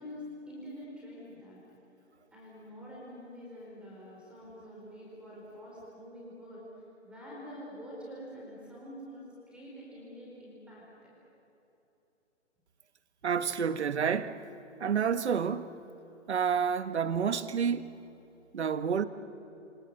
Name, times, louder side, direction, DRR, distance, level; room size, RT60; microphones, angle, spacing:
voice 1, 0.0-1.6 2.3-6.6 7.0-9.3 9.5-11.1, equal, 5° right, 4.4 m, -46 dB
voice 2, 13.2-14.4 14.8-15.8 16.3-18.0 18.5-19.0, right 7 dB, 60° right, 1.4 m, -29 dB
29.0 x 25.5 x 7.8 m
hypercardioid pair, 160°, 38 cm